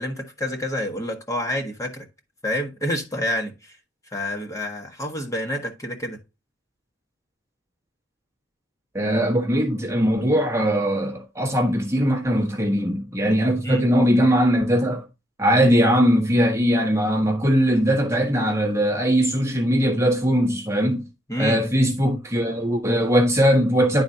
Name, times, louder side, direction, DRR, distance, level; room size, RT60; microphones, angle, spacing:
voice 1, 0.0-2.0 2.4-3.8 4.1-6.2 13.6-13.8 21.3-21.6, left 1 dB, 15° left, 1.4 m, -28 dB
voice 2, 8.9-15.0 15.4-21.0 21.4-24.0, equal, 15° right, 1.3 m, -20 dB
11.5 x 4.1 x 2.8 m
head